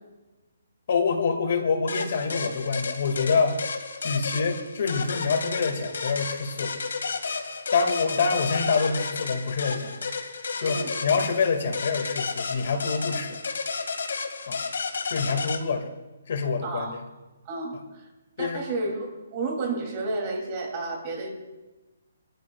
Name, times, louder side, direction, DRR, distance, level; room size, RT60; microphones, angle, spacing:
voice 1, 0.9-3.6 4.0-6.7 7.7-10.1 10.6-13.4 14.5-14.6 15.1-15.9 16.3-17.0 18.4-18.6, left 5 dB, 50° left, 5 dB, 1.9 m, -26 dB
sound 1, 1.9-15.6, left 4 dB, 85° left, 1.9 m, -32 dB
voice 2, 16.6-17.0 17.4-18.1 18.4-21.3, right 3 dB, 25° right, 0 dB, 2.6 m, -31 dB
23.5 x 13.5 x 2.3 m, 1.1 s
hypercardioid pair, 170°, 0 cm